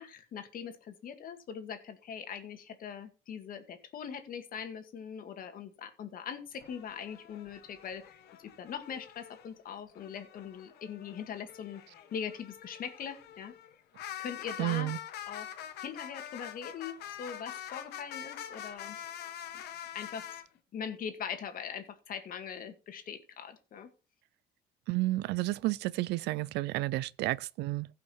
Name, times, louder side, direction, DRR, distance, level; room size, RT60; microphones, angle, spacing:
voice 1, 0.0-11.8 12.1-13.5 14.2-14.9 15.3-15.5 15.8-19.0 19.5-19.6 19.9-20.3 20.7-23.9, left 7 dB, 55° left, 2.1 m, -41 dB
sound 1, 6.6-9.5 9.9-20.4, left 10 dB, 75° left, 1.5 m, -45 dB
voice 2, 14.6-15.0 24.9-27.9, right 18 dB, 80° right, 0.5 m, -31 dB
15.5 x 5.9 x 4.5 m
cardioid pair, 110°, 17 cm